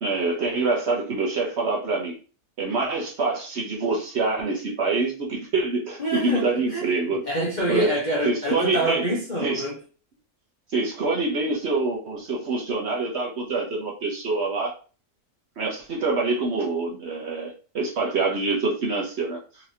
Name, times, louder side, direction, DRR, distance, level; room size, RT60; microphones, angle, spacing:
voice 1, 0.0-2.1 2.6-7.2 7.7-7.9 8.2-9.1 9.4-9.6 10.7-14.7 15.6-19.4, right 3 dB, 55° right, 0.9 m, -25 dB
voice 2, 6.0-9.8, right 1 dB, 40° left, 0.8 m, -27 dB
4.0 x 2.9 x 2.7 m
omnidirectional pair, 1.6 m